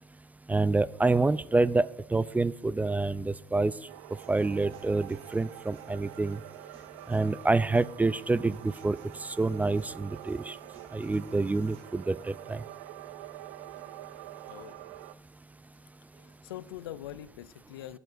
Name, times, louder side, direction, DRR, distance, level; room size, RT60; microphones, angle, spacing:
voice 1, 0.5-3.7 4.3-6.4 7.1-10.6 10.9-12.6, right 3 dB, 10° right, 0.4 m, -27 dB
sound 1, 2.1-17.3, right 4 dB, 45° right, 2.0 m, -61 dB
sound 2, 3.9-15.1, right 14 dB, 75° right, 0.4 m, -47 dB
voice 2, 16.2-18.0, left 13 dB, 90° left, 0.4 m, -43 dB
19.5 x 6.9 x 2.5 m
hypercardioid pair, 65°, 12 cm